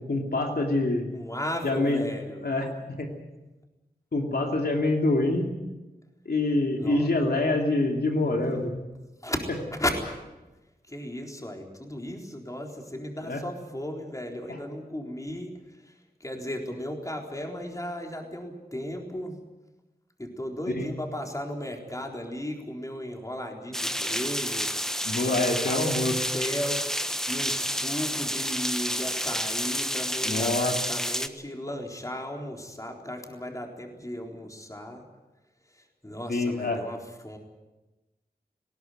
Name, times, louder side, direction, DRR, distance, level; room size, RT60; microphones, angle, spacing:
voice 1, 0.1-1.1 1.6-2.0 2.4-2.7 3.0-3.1 4.1-5.5 6.2-8.7 13.2-13.4 20.8-20.9 24.0-24.1 25.0-26.1 30.2-30.8 36.3-36.8, left 2 dB, 70° left, 2 dB, 2.8 m, -25 dB
voice 2, 1.1-2.4 6.8-7.1 8.4-8.6 9.2-9.4 9.7-10.1 10.9-15.9 16.2-19.4 20.2-24.7 25.2-25.9 26.3-26.8 27.3-35.0 35.7-37.0 37.2-37.4, left 1 dB, 20° left, 1 dB, 3.9 m, -35 dB
sound 1, 23.7-31.3, equal, 5° left, 1.2 m, -30 dB
19.5 x 18.0 x 9.3 m, 1.1 s
wide cardioid pair, 75°, 17 cm